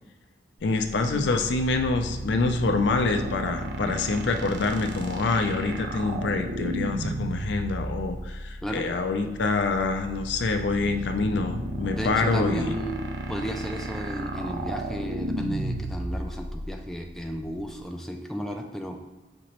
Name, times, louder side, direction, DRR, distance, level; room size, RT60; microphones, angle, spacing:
voice 1, 0.6-12.7, left 3 dB, 75° left, 5 dB, 0.4 m, -26 dB
sound 1, 0.6-17.8, right 1 dB, 75° right, 0.5 m, -34 dB
voice 2, 11.9-19.0, equal, ahead, 2 dB, 0.3 m, -33 dB
5.1 x 2.9 x 3.0 m, 1.1 s
head